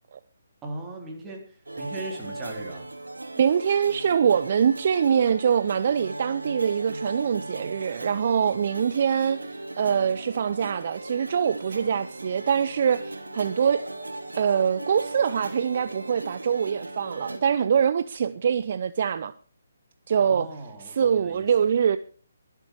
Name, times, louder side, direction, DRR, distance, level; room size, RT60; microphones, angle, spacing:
voice 1, 0.6-2.9 20.2-21.5, right 2 dB, 10° right, 3.5 m, -38 dB
sound 1, 1.7-17.4, right 2 dB, 75° right, 3.1 m, -38 dB
voice 2, 3.3-13.8 14.3-19.3 20.1-20.5 20.8-22.0, right 7 dB, 45° right, 0.6 m, -24 dB
22.5 x 8.3 x 4.7 m
figure-of-eight pair, 140°, 0 cm